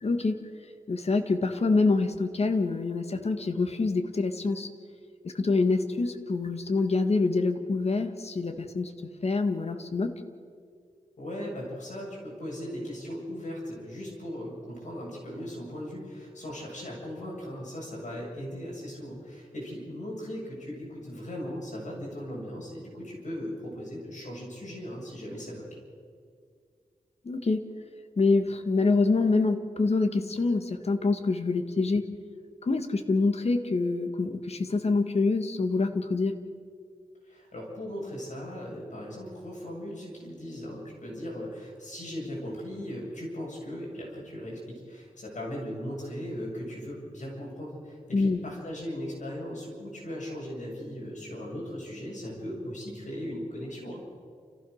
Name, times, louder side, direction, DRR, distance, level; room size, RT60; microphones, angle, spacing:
voice 1, 0.0-0.4 0.9-4.7 5.2-8.9 9.2-10.1 27.2-27.6 28.2-32.1 32.6-36.4 48.1-48.4, left 3 dB, 55° left, 7 dB, 1.6 m, -26 dB
voice 2, 11.2-25.7 37.2-54.0, equal, 70° left, -3 dB, 7.5 m, -38 dB
29.0 x 15.0 x 6.5 m, 2.1 s
wide cardioid pair, 110°, 13 cm